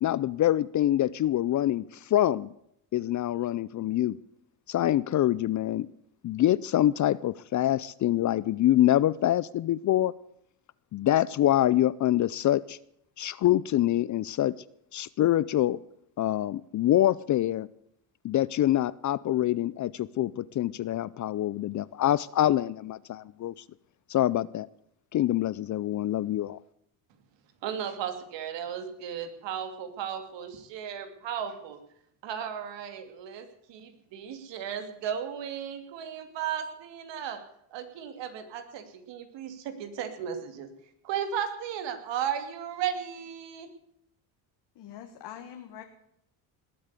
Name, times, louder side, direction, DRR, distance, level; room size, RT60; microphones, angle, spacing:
voice 1, 0.0-2.5 2.9-4.2 4.7-5.9 6.2-10.1 10.9-12.8 13.2-14.5 14.9-15.8 16.2-17.7 18.2-23.5 24.1-24.7 25.1-26.6, left 13 dB, 45° left, 20 dB, 0.5 m, -25 dB
voice 2, 27.6-31.8 32.2-37.4 37.7-40.7 41.0-43.7, right 8 dB, 70° right, 8 dB, 2.8 m, -35 dB
voice 3, 44.8-45.8, left 10 dB, 60° left, 5 dB, 1.8 m, -43 dB
20.0 x 8.8 x 8.2 m, 0.73 s
cardioid pair, 110°, 45 cm